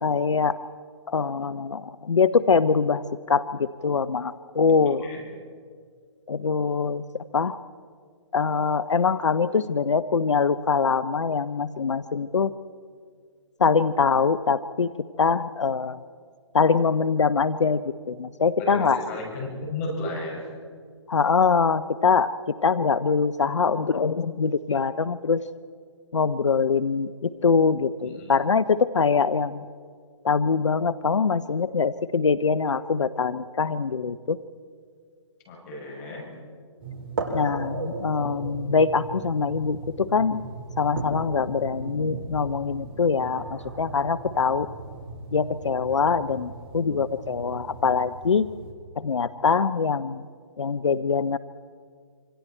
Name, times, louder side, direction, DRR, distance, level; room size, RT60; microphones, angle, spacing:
voice 1, 0.0-0.6 1.1-5.0 6.3-7.0 7.3-7.6 8.3-12.5 13.6-14.9 15.2-16.0 16.5-19.0 21.1-22.3 22.6-25.4 26.1-29.6 30.2-34.4 37.3-40.4 40.8-44.7 45.3-48.5 49.0-50.2 50.6-51.4, left 5 dB, 80° left, 15 dB, 0.7 m, -23 dB
voice 2, 18.6-20.5 28.0-28.4 35.5-36.3, left 2 dB, 35° left, -1 dB, 6.7 m, -34 dB
sound 1, 36.8-48.7, right 2 dB, 50° right, 4.8 m, -37 dB
26.5 x 25.5 x 4.4 m, 2.1 s
figure-of-eight pair, 140°, 15 cm